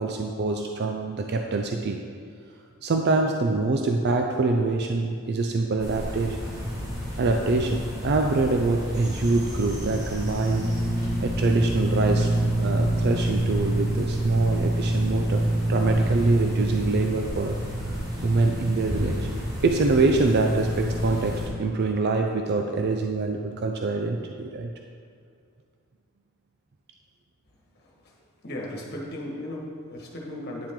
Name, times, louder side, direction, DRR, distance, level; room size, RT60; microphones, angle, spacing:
voice 1, 0.0-2.0 2.8-6.4 7.2-10.7 11.2-12.3 12.6-17.6 17.9-19.3 19.6-24.7, right 3 dB, 50° right, 3 dB, 0.4 m, -25 dB
sound 1, 5.8-21.5, right 1 dB, 15° right, 1.5 m, -27 dB
voice 2, 27.8-28.1 28.4-30.7, left 1 dB, 45° left, -1 dB, 1.5 m, -36 dB
9.3 x 7.4 x 3.7 m, 2.3 s
head